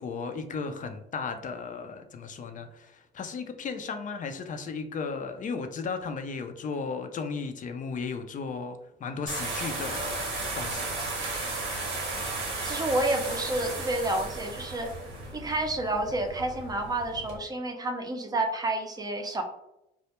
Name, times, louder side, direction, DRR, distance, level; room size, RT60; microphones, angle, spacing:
voice 1, 0.0-10.3 10.6-11.1, left 5 dB, 40° left, 7 dB, 0.4 m, -35 dB
sound 1, 9.3-17.4, right 2 dB, 90° right, 0.8 m, -34 dB
voice 2, 12.6-14.9 15.3-19.4, right 2 dB, 20° right, 4 dB, 0.4 m, -29 dB
2.1 x 2.0 x 2.8 m, 0.83 s
cardioid pair, 90°, 20 cm